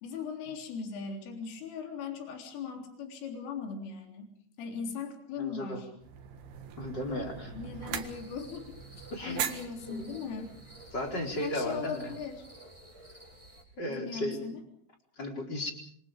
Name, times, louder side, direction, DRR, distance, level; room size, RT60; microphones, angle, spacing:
voice 1, 0.0-4.3 4.6-5.9 7.1-10.5 11.4-12.5 13.9-14.6, left 5 dB, 75° left, 3 dB, 6.1 m, -39 dB
voice 2, 5.4-5.8 6.8-7.5 9.1-9.6 9.9-10.1 10.9-12.1 13.8-14.4 15.2-15.7, left 1 dB, 20° left, 2 dB, 4.4 m, -35 dB
sound 1, 6.0-11.4, right 8 dB, 60° right, 3.1 m, -41 dB
sound 2, 7.9-13.6, right 1 dB, 5° right, 5.5 m, -52 dB
27.5 x 26.5 x 5.2 m, 0.64 s
omnidirectional pair, 5.9 m